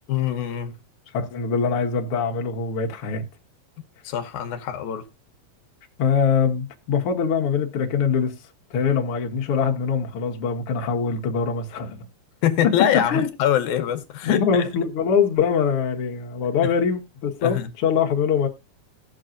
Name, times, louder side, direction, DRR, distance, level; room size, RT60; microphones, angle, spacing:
voice 1, 0.1-0.7 4.0-5.0 12.4-14.7 16.6-16.7 17.4-17.7, left 10 dB, 85° left, 2.4 m, -24 dB
voice 2, 1.1-3.2 6.0-8.3 8.7-12.1 13.1-13.3 14.2-18.5, left 6 dB, 55° left, 2.0 m, -23 dB
18.5 x 6.4 x 2.5 m
omnidirectional pair, 3.3 m